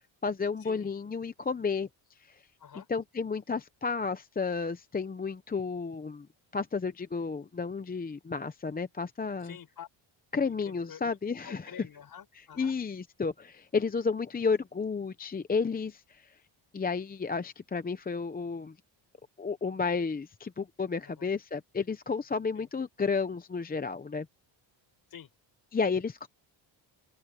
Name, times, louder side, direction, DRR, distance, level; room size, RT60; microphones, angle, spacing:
voice 1, 0.2-1.9 2.2-2.4 2.9-6.3 6.5-9.6 10.3-11.7 12.6-16.3 16.7-18.7 19.4-24.3 25.7-26.3, left 5 dB, 20° left, 0.8 m, -32 dB
voice 2, 9.4-9.9 10.4-11.2 11.4-12.8 21.2-21.3 22.6-22.7 25.1-25.3, left 8 dB, 45° left, 5.5 m, -48 dB
open air
cardioid pair, 125°, 48 cm